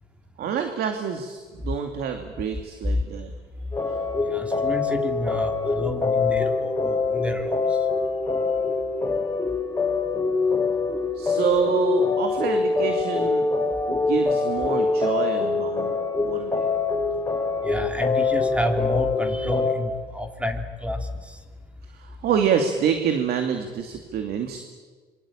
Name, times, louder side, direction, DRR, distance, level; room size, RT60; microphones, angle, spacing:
voice 1, 0.4-3.3 11.1-13.5 13.9-16.7 21.8-24.6, right 7 dB, 70° right, 5 dB, 2.6 m, -27 dB
sound 1, 3.7-19.7, left 4 dB, 15° left, 6.0 m, -24 dB
voice 2, 4.2-7.6 17.6-21.0, left 1 dB, 5° right, 5 dB, 3.1 m, -29 dB
26.5 x 24.5 x 8.9 m, 1.4 s
cardioid pair, 110°, 17 cm